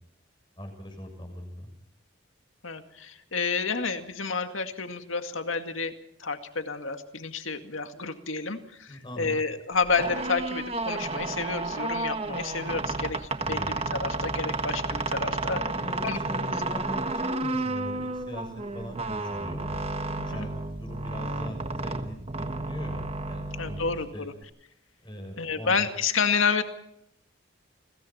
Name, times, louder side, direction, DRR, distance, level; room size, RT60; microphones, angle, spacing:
voice 1, 0.6-1.7 8.9-9.4 13.4-13.8 14.5-14.6 15.5-23.8 24.1-24.3 25.0-25.9, equal, 25° left, 4 dB, 6.9 m, -40 dB
voice 2, 2.6-5.9 6.2-13.2 13.5-15.6 16.0-16.2 20.2-20.5 23.6-24.3 25.4-26.6, left 5 dB, 85° left, 7 dB, 2.1 m, -30 dB
sound 1, 9.8-24.4, right 2 dB, 30° right, 1.4 m, -32 dB
29.5 x 21.5 x 4.4 m, 0.75 s
head